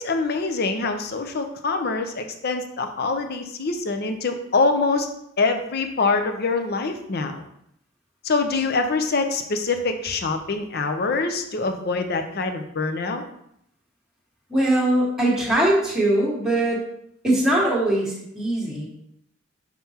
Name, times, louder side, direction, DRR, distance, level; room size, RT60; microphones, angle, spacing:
voice 1, 0.0-5.1 5.4-7.4 8.2-13.2, left 3 dB, 55° left, 6 dB, 0.6 m, -24 dB
voice 2, 14.5-16.9 17.2-18.9, right 1 dB, 5° right, -5 dB, 1.6 m, -21 dB
5.8 x 5.6 x 2.9 m, 0.74 s
head